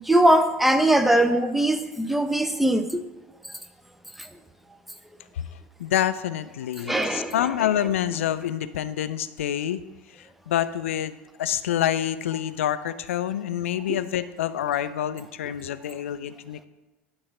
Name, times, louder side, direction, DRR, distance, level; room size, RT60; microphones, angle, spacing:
voice 1, 0.1-3.0 6.9-7.3 13.9-14.0, right 1 dB, ahead, 0.6 m, -21 dB
voice 2, 5.8-9.8 10.1-16.6, left 11 dB, 70° left, 0.4 m, -27 dB
8.9 x 4.0 x 5.9 m
figure-of-eight pair, 80°, 7 cm